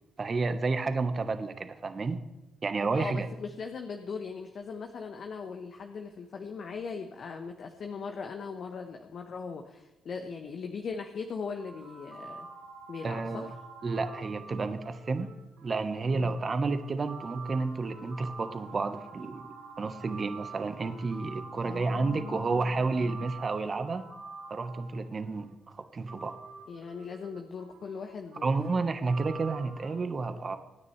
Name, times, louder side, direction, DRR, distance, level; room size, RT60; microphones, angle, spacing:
voice 1, 0.2-2.2 2.6-3.3 13.0-13.5 13.8-15.3 15.6-19.4 19.8-24.0 24.5-25.5 25.9-26.3 28.4-30.6, right 3 dB, 40° right, 9 dB, 1.2 m, -31 dB
voice 2, 2.9-12.5 12.9-13.5 16.1-16.4 21.6-23.1 26.7-28.5, left 5 dB, 55° left, 4 dB, 1.1 m, -39 dB
sound 1, 11.6-25.4 26.1-29.9, right 4 dB, 70° right, 4.3 m, -47 dB
25.0 x 9.6 x 3.3 m, 1.0 s
hypercardioid pair, 50°, 0 cm